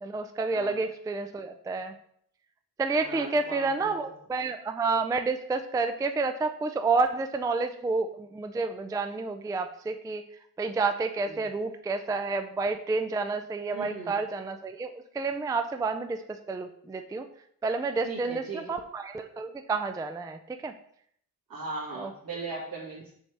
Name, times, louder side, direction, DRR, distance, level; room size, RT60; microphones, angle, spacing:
voice 1, 0.0-2.0 2.8-10.2 10.6-17.3 17.6-18.4 18.7-20.7 22.0-22.1, right 3 dB, 10° right, 8 dB, 0.3 m, -30 dB
voice 2, 3.0-4.0 11.3-11.5 13.7-14.1 18.0-18.8 21.5-23.2, right 3 dB, 75° right, -1 dB, 2.3 m, -38 dB
7.1 x 6.2 x 3.4 m, 0.66 s
wide cardioid pair, 135°, 36 cm